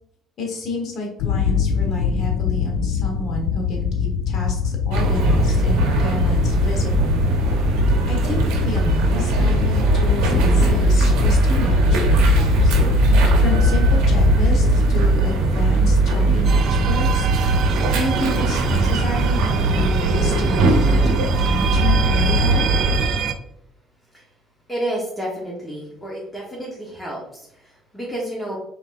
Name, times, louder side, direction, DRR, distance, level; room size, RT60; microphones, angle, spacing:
voice 1, 0.4-7.2 8.1-22.7, left 1 dB, 55° left, 1 dB, 1.3 m, -30 dB
sound 1, 1.2-14.8, left 7 dB, 80° left, 0.3 m, -23 dB
sound 2, 4.9-23.1, right 2 dB, 75° right, 0.7 m, -19 dB
sound 3, 16.4-23.3, right 6 dB, 55° right, 0.4 m, -27 dB
voice 2, 24.7-28.6, right 1 dB, 10° left, -3 dB, 1.2 m, -30 dB
4.4 x 3.4 x 2.6 m, 0.75 s
supercardioid pair, 70°, 0 cm